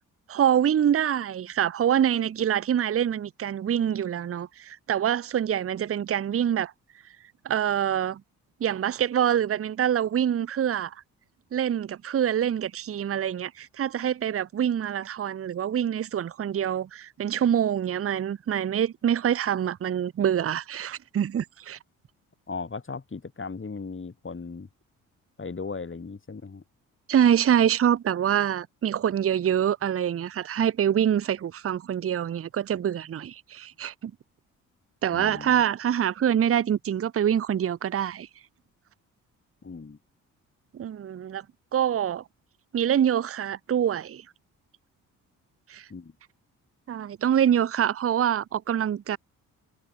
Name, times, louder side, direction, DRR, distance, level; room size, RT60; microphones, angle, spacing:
voice 1, 0.3-6.7 7.4-8.2 8.6-10.9 11.5-21.8 27.1-34.1 35.0-38.3 40.7-41.4 41.7-42.2 42.7-44.2 45.7-45.8 46.9-49.2, right 9 dB, 35° right, 0.8 m, -25 dB
voice 2, 22.5-24.7 25.4-26.6 35.1-35.6 39.6-40.0 45.9-46.1, left 4 dB, 30° left, 4.2 m, -37 dB
hypercardioid pair, 45°, 40 cm